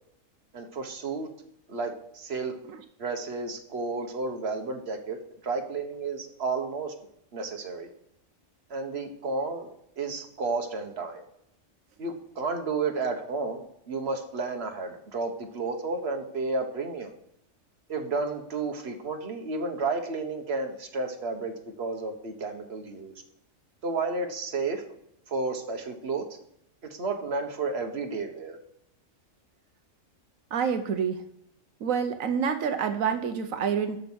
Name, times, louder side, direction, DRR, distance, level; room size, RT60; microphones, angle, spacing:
voice 1, 0.5-1.3 1.7-2.5 3.0-5.2 5.4-6.9 7.3-7.9 8.7-11.2 12.0-17.1 17.9-23.2 23.8-24.8 25.3-26.2 26.9-28.6, right 3 dB, 55° right, 5 dB, 1.6 m, -32 dB
voice 2, 30.5-31.2 31.8-34.0, right 7 dB, 90° right, 7 dB, 1.2 m, -27 dB
13.0 x 5.5 x 6.2 m, 0.76 s
omnidirectional pair, 1.4 m